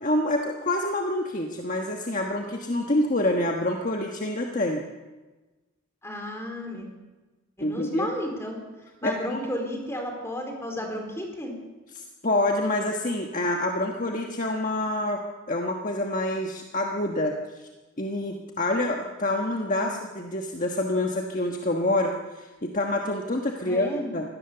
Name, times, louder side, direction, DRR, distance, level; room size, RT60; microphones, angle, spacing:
voice 1, 0.0-4.8 7.6-8.1 9.0-9.4 11.9-15.2 15.5-17.7 18.0-24.2, left 1 dB, 35° left, 2 dB, 1.4 m, -27 dB
voice 2, 6.0-6.9 7.6-8.6 9.0-11.6 19.8-19.9 23.6-24.1, equal, 10° left, 2 dB, 4.2 m, -32 dB
24.0 x 17.5 x 6.9 m, 1.2 s
head